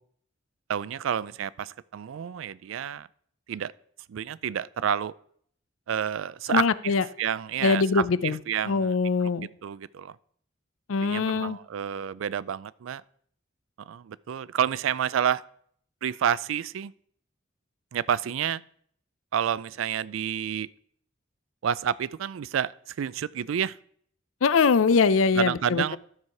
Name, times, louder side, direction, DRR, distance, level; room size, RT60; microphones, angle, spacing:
voice 1, 0.7-3.1 3.5-3.7 4.1-5.1 5.9-6.6 7.2-8.9 9.6-10.2 11.0-13.0 13.8-15.4 16.0-16.9 17.9-18.6 19.3-20.7 21.6-23.8 25.4-26.0, right 8 dB, 75° right, 20 dB, 0.4 m, -29 dB
voice 2, 6.5-7.0 7.6-8.4 8.7-9.5 10.9-11.6 24.4-26.0, left 5 dB, 80° left, 16 dB, 0.5 m, -22 dB
12.5 x 4.7 x 5.8 m, 0.62 s
head